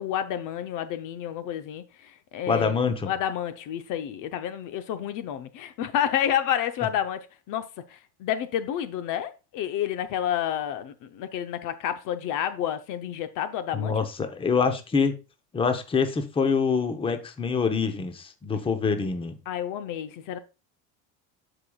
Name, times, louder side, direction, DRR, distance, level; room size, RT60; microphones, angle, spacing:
voice 1, 0.0-2.8 3.1-7.2 7.5-13.9 19.5-20.4, left 10 dB, 55° left, 0.7 m, -30 dB
voice 2, 2.5-3.1 13.7-15.1 15.5-19.4, left 5 dB, 15° left, 0.8 m, -25 dB
13.0 x 5.0 x 2.3 m
cardioid pair, 140°, 37 cm